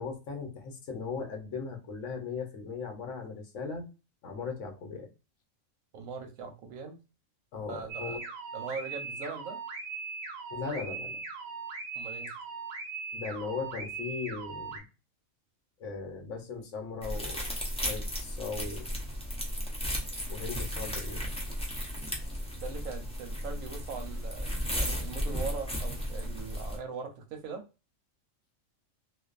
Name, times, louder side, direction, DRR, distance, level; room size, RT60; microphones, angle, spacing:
voice 1, 0.0-3.9 4.2-5.1 7.5-8.2 10.5-11.2 13.1-14.8 15.8-17.5 17.8-18.9 20.3-21.3, left 5 dB, 70° left, 1.0 m, -38 dB
voice 2, 5.9-7.0 7.7-8.2 8.5-9.6 11.9-12.4 22.6-27.6, right 5 dB, 90° right, 1.1 m, -40 dB
sound 1, 7.9-14.8, right 4 dB, 55° right, 0.8 m, -39 dB
sound 2, 17.0-26.8, equal, 10° left, 0.3 m, -34 dB
2.5 x 2.3 x 2.3 m
omnidirectional pair, 1.4 m